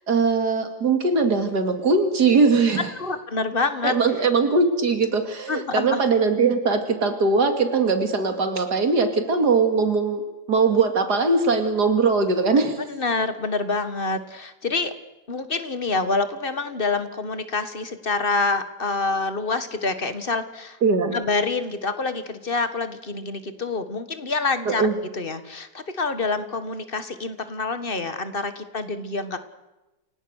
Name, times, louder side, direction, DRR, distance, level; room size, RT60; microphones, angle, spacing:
voice 1, 0.1-2.9 3.8-10.2 10.5-12.8 20.8-21.2 24.7-25.0, right 4 dB, 90° right, 7 dB, 3.0 m, -20 dB
voice 2, 3.0-3.9 5.5-6.0 12.9-14.9 15.3-20.8 21.1-24.9 25.1-29.4, left 3 dB, 35° left, 10 dB, 1.9 m, -27 dB
29.5 x 17.5 x 6.6 m, 1.0 s
omnidirectional pair, 1.7 m